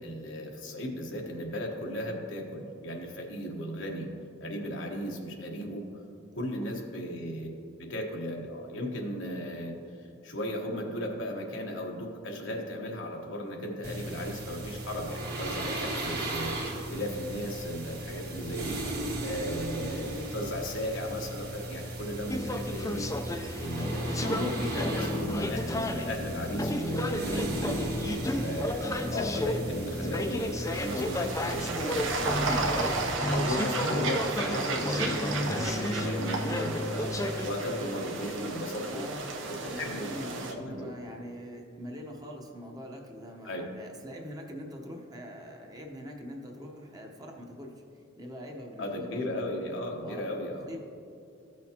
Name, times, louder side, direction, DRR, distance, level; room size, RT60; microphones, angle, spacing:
voice 1, 0.0-4.1 4.4-5.9 6.3-7.5 7.8-16.5 16.9-18.8 19.2-23.1 23.6-27.8 28.0-32.3 33.2-39.0 39.5-40.9 43.4-43.7 48.8-50.7, equal, 80° left, 1 dB, 1.2 m, -36 dB
sound 1, 13.8-33.2, right 1 dB, 55° right, 1.8 m, -37 dB
voice 2, 18.3-18.7 26.8-27.2 38.9-39.3 39.6-49.4 50.0-50.3 50.7-50.8, equal, 20° right, 1 dB, 0.9 m, -43 dB
sound 2, 22.3-37.5, left 1 dB, 15° left, 0.4 m, -32 dB
sound 3, 30.7-40.5, right 3 dB, 80° right, 0.8 m, -33 dB
14.5 x 6.2 x 2.9 m, 2.5 s
head